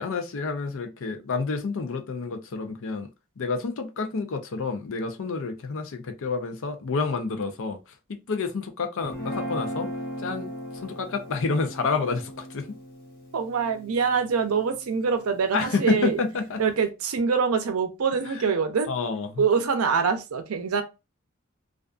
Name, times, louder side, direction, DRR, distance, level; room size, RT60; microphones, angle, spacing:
voice 1, 0.0-3.1 3.4-7.8 8.1-9.9 10.2-12.7 15.5-16.6 18.2-18.6 18.9-19.5, left 4 dB, 65° left, 0.5 m, -29 dB
Guitar, 9.0-15.4, equal, 45° left, 1.0 m, -38 dB
voice 2, 13.3-16.2 16.6-18.9 19.4-20.8, right 5 dB, 85° right, 0.5 m, -24 dB
2.4 x 2.3 x 2.4 m
head